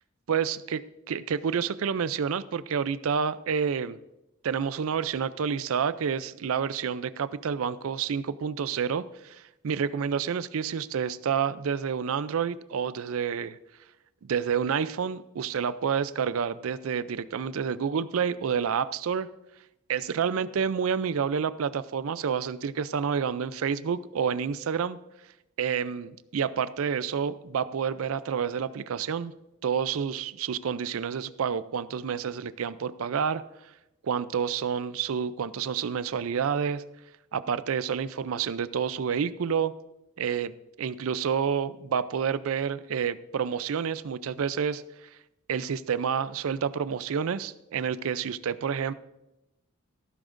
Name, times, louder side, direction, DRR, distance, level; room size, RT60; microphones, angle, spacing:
voice 1, 0.3-4.0 4.4-13.6 14.2-19.3 19.9-25.0 25.6-29.3 29.6-33.4 34.0-36.8 37.3-39.7 40.2-44.8 45.5-48.9, right 7 dB, 75° right, 15 dB, 0.4 m, -29 dB
14.5 x 13.0 x 2.6 m, 0.91 s
head